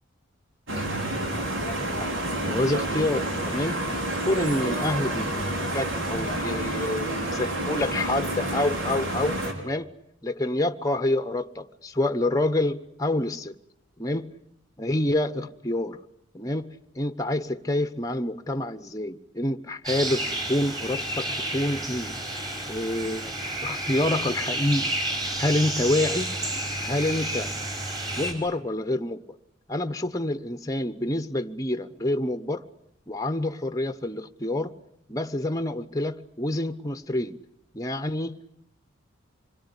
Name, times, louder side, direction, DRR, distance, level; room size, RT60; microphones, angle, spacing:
sound 1, 0.7-9.5, right 1 dB, 70° right, 5.4 m, -29 dB
voice 1, 2.0-3.9 4.2-9.9 10.2-13.5 14.0-14.4 14.8-16.0 16.3-22.2 22.7-23.3 23.6-25.0 25.4-26.3 26.8-27.5 28.2-29.2 29.7-32.6 33.1-34.8 35.1-37.4 37.7-38.5, left 1 dB, 15° left, 1.0 m, -27 dB
sound 2, 19.8-28.3, right 1 dB, 20° right, 5.2 m, -30 dB
26.5 x 22.0 x 9.9 m
head